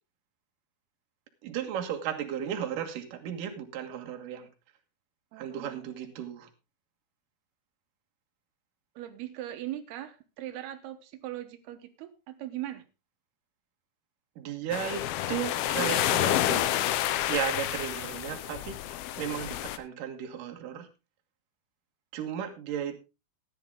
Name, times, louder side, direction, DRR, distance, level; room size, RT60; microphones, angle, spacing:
voice 1, 1.4-4.5 5.4-6.5 14.4-16.6 17.3-18.8 19.2-20.9 22.1-23.1, right 9 dB, 65° right, 5 dB, 3.0 m, -35 dB
voice 2, 5.3-6.1 9.0-12.8, right 13 dB, 85° right, 7 dB, 3.1 m, -40 dB
sound 1, 14.7-19.8, left 13 dB, 80° left, 2.7 m, -29 dB
14.5 x 10.5 x 3.6 m, 0.28 s
omnidirectional pair, 4.5 m